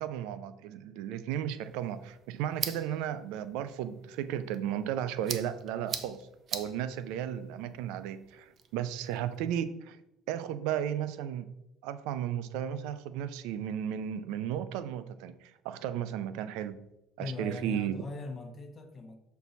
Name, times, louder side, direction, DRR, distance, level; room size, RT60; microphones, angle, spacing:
voice 1, 0.0-10.0 10.3-11.5 11.8-16.9 17.2-18.1, right 10 dB, 85° right, 0.4 m, -34 dB
sound 1, 1.6-9.5, right 7 dB, 40° right, 0.6 m, -43 dB
voice 2, 17.2-19.2, left 3 dB, 30° left, 1.0 m, -40 dB
6.9 x 4.5 x 4.0 m
cardioid pair, 120°, 0 cm